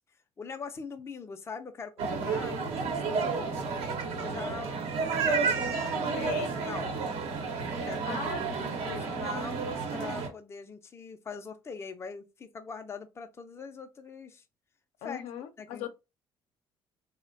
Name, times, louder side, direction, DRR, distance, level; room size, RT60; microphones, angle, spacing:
voice 1, 0.4-4.8 5.3-5.7 6.6-6.9 7.7-8.2 8.6-14.4 15.0-15.2 15.6-15.9, left 5 dB, 25° left, 0.4 m, -42 dB
sound 1, 2.0-10.3, right 4 dB, 75° right, 0.9 m, -31 dB
voice 2, 2.5-2.9 6.1-6.6 8.1-9.2 15.0-15.9, left 10 dB, 75° left, 0.5 m, -40 dB
3.5 x 2.1 x 2.6 m
cardioid pair, 90°, 11 cm